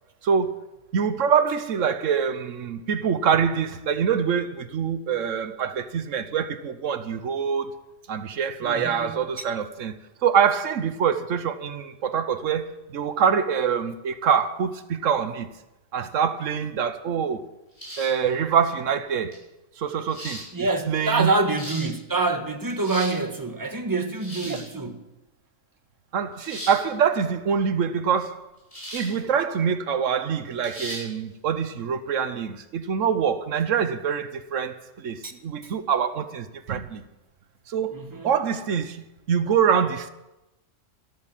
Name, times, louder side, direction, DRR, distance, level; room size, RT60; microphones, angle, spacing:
voice 1, 0.2-0.6 0.9-7.8 8.1-9.9 10.2-15.5 15.9-17.4 18.0-19.3 19.8-20.4 20.9-21.3 24.4-24.6 26.1-28.4 28.9-37.0 37.7-40.1, right 7 dB, 90° right, 1.3 m, -25 dB
voice 2, 8.6-9.4 20.5-25.0 35.2-35.3 37.9-38.3, right 3 dB, 15° right, 1.3 m, -26 dB
sound 1, 17.8-18.2 19.3-19.4 20.1-20.5 21.3-21.9 22.6-23.2 24.1-24.7 26.4-26.8 28.7-29.1 29.5-29.6 30.6-31.0, equal, 25° left, 7.0 m, -37 dB
13.0 x 13.0 x 7.3 m
omnidirectional pair, 1.3 m